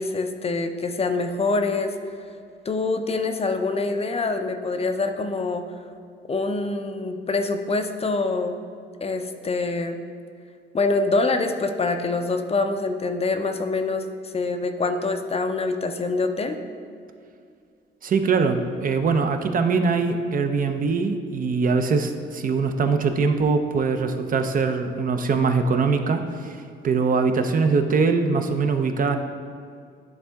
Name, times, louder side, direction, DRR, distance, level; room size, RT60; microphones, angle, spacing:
voice 1, 0.0-2.1 2.7-5.7 6.3-8.6 9.0-10.0 10.7-16.6, left 3 dB, 30° left, 6 dB, 0.5 m, -25 dB
voice 2, 18.0-26.6 26.8-29.2, right 4 dB, 45° right, 7 dB, 0.6 m, -22 dB
10.5 x 3.6 x 3.4 m, 2.3 s
cardioid pair, 90°, 20 cm